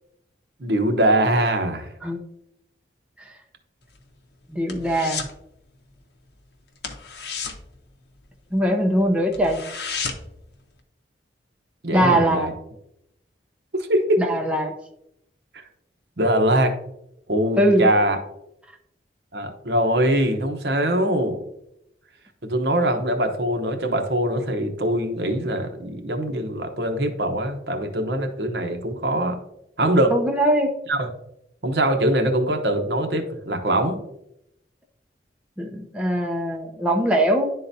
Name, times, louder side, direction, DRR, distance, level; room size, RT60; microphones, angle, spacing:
voice 1, 0.6-1.9 11.8-12.5 13.7-14.2 16.2-16.8 17.3-18.2 19.3-21.4 22.4-29.4 29.8-30.1 30.9-31.0 31.6-34.0, right 1 dB, 65° right, 5 dB, 0.9 m, -22 dB
sound 1, 3.8-5.4 5.7-6.0 6.3-6.4 6.8-8.6 9.0-9.1 9.3-10.4 10.8-10.9, left 5 dB, 65° left, 0.8 m, -33 dB
voice 2, 4.5-5.3 8.5-9.6 11.9-12.5 14.2-14.7 17.6-17.9 30.1-30.8 35.6-37.5, right 1 dB, 5° right, 1 dB, 0.6 m, -21 dB
11.0 x 3.8 x 2.7 m, 0.80 s
head